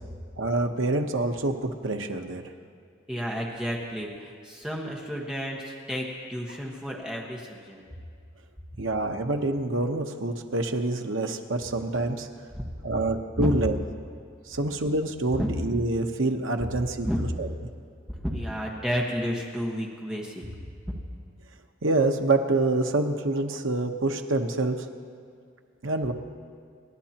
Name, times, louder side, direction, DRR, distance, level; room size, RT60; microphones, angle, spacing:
voice 1, 0.4-2.4 8.8-12.3 12.8-13.7 14.5-17.1 17.4-17.5 21.8-24.9 25.8-26.1, right 2 dB, 80° right, 5 dB, 1.0 m, -26 dB
voice 2, 3.1-7.8 12.6-12.7 13.4-13.5 15.4-15.5 17.0-17.2 18.1-20.6 20.9-21.0, equal, 5° right, -2 dB, 1.3 m, -31 dB
27.5 x 12.0 x 2.9 m, 2.2 s
head